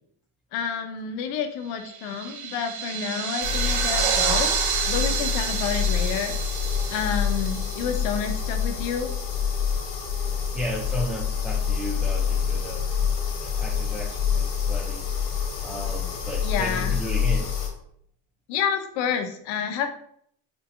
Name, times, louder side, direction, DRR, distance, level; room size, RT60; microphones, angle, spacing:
voice 1, 0.5-4.6 4.8-6.4 6.9-9.1 16.4-16.9 18.5-19.9, left 7 dB, 75° left, 7 dB, 0.7 m, -29 dB
sound 1, 1.8-8.6, right 7 dB, 60° right, 0.7 m, -29 dB
sound 2, 3.4-17.7, left 7 dB, 50° left, 1.2 m, -27 dB
voice 2, 10.5-12.9 13.4-15.1 15.6-17.5, equal, 5° right, -4 dB, 0.4 m, -34 dB
4.4 x 2.7 x 2.6 m, 0.66 s
cardioid pair, 115°, 43 cm